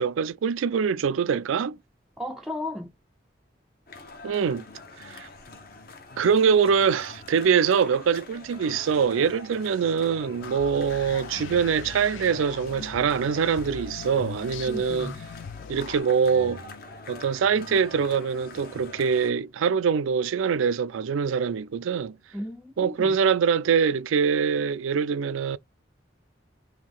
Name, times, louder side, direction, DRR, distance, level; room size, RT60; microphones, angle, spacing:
voice 1, 0.0-1.8 4.2-4.6 5.0-5.3 6.2-15.1 15.7-16.6 17.1-22.2 22.8-25.6, right 6 dB, 90° right, 0.4 m, -24 dB
voice 2, 2.2-2.9 14.7-15.2 22.3-23.2, left 1 dB, ahead, 0.4 m, -35 dB
sound 1, 3.9-19.3, left 3 dB, 50° left, 0.8 m, -44 dB
sound 2, 10.4-16.0, left 7 dB, 75° left, 0.3 m, -41 dB
3.6 x 2.7 x 3.7 m
head